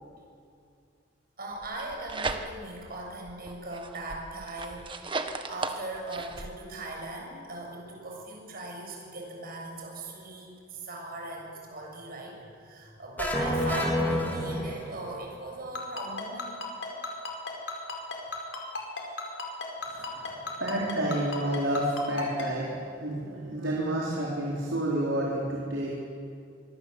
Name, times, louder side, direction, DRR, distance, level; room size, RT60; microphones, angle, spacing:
voice 1, 1.4-16.6, right 2 dB, 55° right, 0 dB, 7.1 m, -39 dB
sound 1, 1.6-2.8 3.3-6.5, right 3 dB, 25° right, 1.3 m, -36 dB
sound 2, 13.2-15.2, left 1 dB, 10° left, 4.3 m, -28 dB
Ringtone, 15.8-22.5, left 4 dB, 80° left, 5.3 m, -34 dB
voice 2, 19.9-25.9, right 1 dB, 90° right, -4 dB, 4.4 m, -30 dB
25.0 x 24.5 x 8.1 m, 2.4 s
head